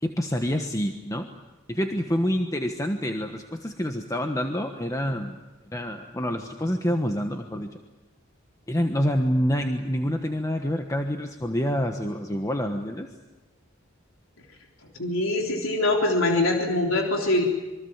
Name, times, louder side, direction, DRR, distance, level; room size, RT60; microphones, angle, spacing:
voice 1, 0.0-1.3 1.7-5.4 5.6-7.7 8.7-13.1, equal, 15° left, 4 dB, 1.3 m, -27 dB
voice 2, 15.0-17.4, left 2 dB, 85° left, 1 dB, 3.6 m, -23 dB
26.5 x 23.5 x 7.4 m, 1.2 s
head